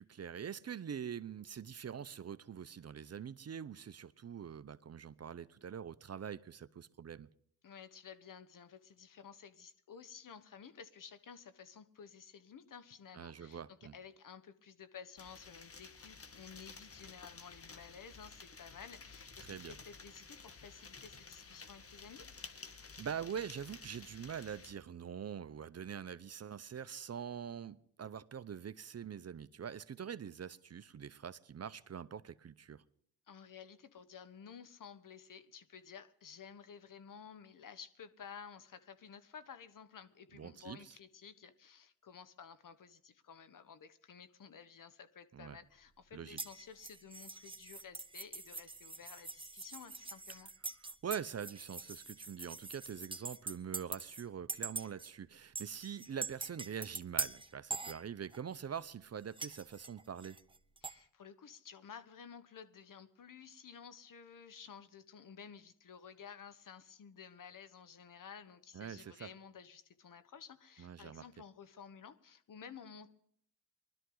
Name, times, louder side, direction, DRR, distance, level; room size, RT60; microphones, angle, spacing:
voice 1, 0.0-7.3 13.1-13.9 19.4-19.7 23.0-32.8 40.3-40.9 45.3-45.6 46.1-46.4 50.8-60.4 68.7-69.3 70.8-71.3, right 8 dB, 40° right, 0.7 m, -44 dB
voice 2, 7.6-22.3 33.3-50.5 60.8-73.1, left 7 dB, 55° left, 1.3 m, -53 dB
sound 1, 15.2-24.7, left 4 dB, 35° left, 1.5 m, -53 dB
sound 2, 46.4-54.2 54.5-55.1 55.6-58.6 59.4-61.0, right 3 dB, 15° right, 1.0 m, -44 dB
20.0 x 12.5 x 3.9 m
cardioid pair, 65°, 39 cm